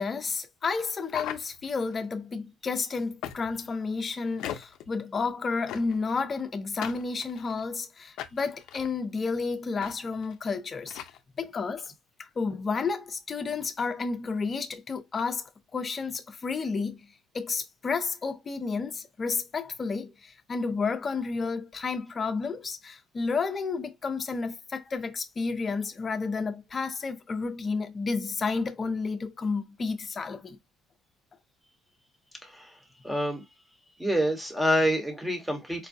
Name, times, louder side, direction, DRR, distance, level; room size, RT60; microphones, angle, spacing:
voice 1, 0.0-11.0 11.4-11.9 12.2-17.0 17.3-30.6, left 4 dB, 30° left, 0.6 m, -31 dB
sound 1, 1.1-2.0 3.2-3.7 4.4-4.9 5.7-6.1 6.8-7.6 8.2-8.9 9.8-9.9 10.2-10.3 10.9-11.2, left 11 dB, 70° left, 0.5 m, -38 dB
voice 2, 32.4-32.8 33.0-33.4 34.0-35.9, equal, 5° right, 1.1 m, -27 dB
4.5 x 2.2 x 2.6 m
cardioid pair, 130°, 0 cm